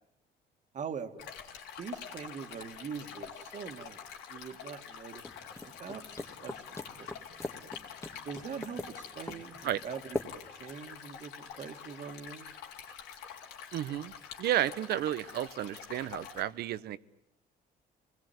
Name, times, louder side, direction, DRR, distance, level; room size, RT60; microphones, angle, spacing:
voice 1, 0.7-1.3 1.8-4.0 4.3-5.3 5.6-7.1 8.3-10.2 10.6-12.5, right 6 dB, 45° right, 8 dB, 2.2 m, -43 dB
Stream, 1.2-16.4, left 7 dB, 90° left, 3.9 m, -47 dB
sound 1, 5.2-10.7, left 2 dB, 15° left, 2.0 m, -42 dB
voice 2, 13.7-14.1 14.4-17.0, right 12 dB, 70° right, 16 dB, 1.1 m, -32 dB
27.0 x 20.5 x 9.6 m, 0.78 s
cardioid pair, 110°, 17 cm